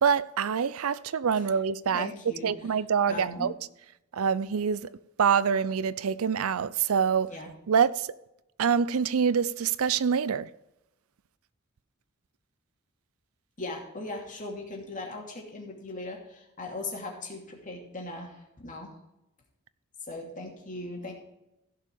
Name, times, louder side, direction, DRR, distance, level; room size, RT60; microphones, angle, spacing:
voice 1, 0.0-2.1 2.4-3.5 4.1-4.9 5.2-7.3 7.7-8.1 8.6-10.5, right 7 dB, 70° right, 0.5 m, -25 dB
voice 2, 1.9-2.5 3.1-3.5 7.3-7.5 13.6-19.0 20.1-21.1, left 2 dB, 35° left, 2.7 m, -39 dB
15.5 x 5.6 x 4.7 m
head